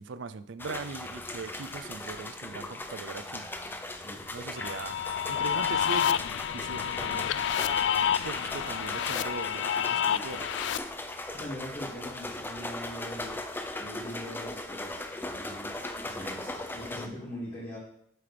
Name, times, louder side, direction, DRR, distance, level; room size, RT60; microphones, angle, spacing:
voice 1, 0.0-3.5 4.3-5.0 5.3-7.4 7.8-10.5 16.2-16.6, right 4 dB, 75° right, 14 dB, 0.5 m, -40 dB
sound 1, 0.6-17.1, left 2 dB, 10° left, 0.5 m, -38 dB
voice 2, 3.6-4.2 10.0-10.3 11.3-13.4 13.8-17.8, left 1 dB, 30° left, -9 dB, 2.2 m, -42 dB
sound 2, 4.6-10.8, left 9 dB, 65° left, 0.3 m, -29 dB
7.7 x 7.6 x 3.4 m, 0.68 s
head